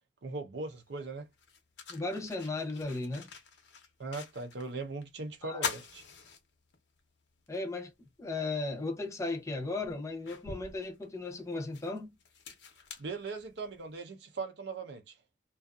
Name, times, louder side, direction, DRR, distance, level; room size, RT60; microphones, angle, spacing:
voice 1, 0.2-1.3 4.0-6.0 13.0-15.1, right 3 dB, 75° right, 0.6 m, -39 dB
sound 1, 0.7-0.8 1.3-4.7 5.0-5.1 5.5-7.0 7.5-7.6 9.0-9.1 9.6-13.8, left 5 dB, 85° left, 0.8 m, -43 dB
voice 2, 1.9-3.3 5.4-5.7 7.5-7.9 8.2-12.2, left 2 dB, 15° left, 0.6 m, -36 dB
2.5 x 2.4 x 2.3 m
head